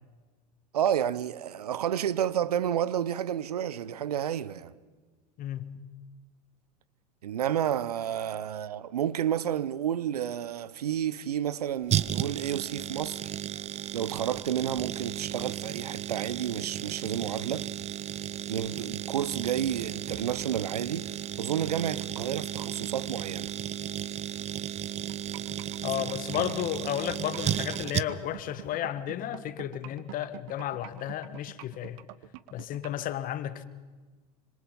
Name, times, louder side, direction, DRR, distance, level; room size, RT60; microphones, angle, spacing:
voice 1, 0.7-4.7 7.2-13.3 13.9-17.7 18.5-23.5 26.4-26.5, right 10 dB, 85° right, 0.8 m, -30 dB
voice 2, 5.4-5.8 25.8-32.0 32.5-33.6, left 11 dB, 45° left, 1.6 m, -33 dB
sound 1, 11.9-28.4 28.7-28.8, right 11 dB, 35° right, 0.8 m, -34 dB
sound 2, 25.1-33.0, right 16 dB, 65° right, 1.1 m, -45 dB
26.5 x 26.0 x 5.4 m
hypercardioid pair, 85°, 19 cm